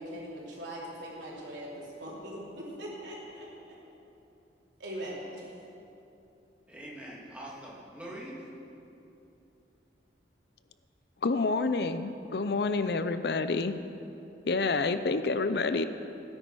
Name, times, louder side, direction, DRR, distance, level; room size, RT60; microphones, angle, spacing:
voice 1, 0.0-3.8 4.8-5.4, equal, 75° right, -5 dB, 3.3 m, -41 dB
voice 2, 6.7-8.5 14.7-15.2, right 1 dB, 5° right, -5 dB, 2.1 m, -44 dB
voice 3, 11.2-13.7 14.5-15.9, left 3 dB, 60° left, 11 dB, 0.5 m, -28 dB
17.0 x 9.8 x 4.7 m, 2.8 s
head